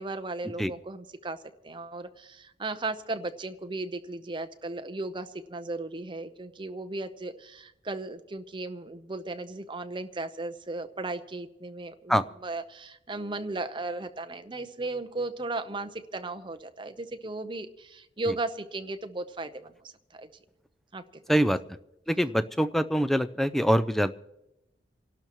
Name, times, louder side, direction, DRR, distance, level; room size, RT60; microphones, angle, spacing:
voice 1, 0.0-1.4 1.6-20.3 20.9-21.4, right 2 dB, 25° right, 9 dB, 0.8 m, -36 dB
voice 2, 22.1-24.1, equal, ahead, 13 dB, 0.4 m, -24 dB
28.5 x 12.0 x 3.0 m, 0.90 s
head